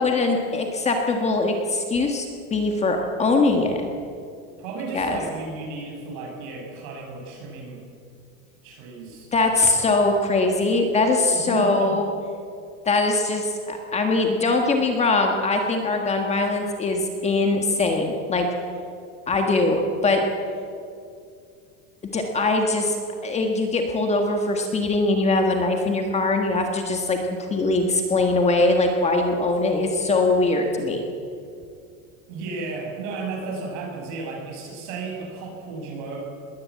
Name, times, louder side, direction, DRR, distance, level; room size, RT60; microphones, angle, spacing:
voice 1, 0.0-2.2 2.5-3.8 4.9-5.2 9.3-12.0 12.8-18.5 19.3-20.2 22.1-23.0 23.2-31.0, left 2 dB, 15° left, 3 dB, 1.6 m, -22 dB
voice 2, 4.6-7.8 8.6-9.8 11.4-12.0 32.3-36.2, right 4 dB, 60° right, 0 dB, 7.1 m, -34 dB
21.0 x 17.0 x 8.4 m, 2.4 s
cardioid pair, 170°, 39 cm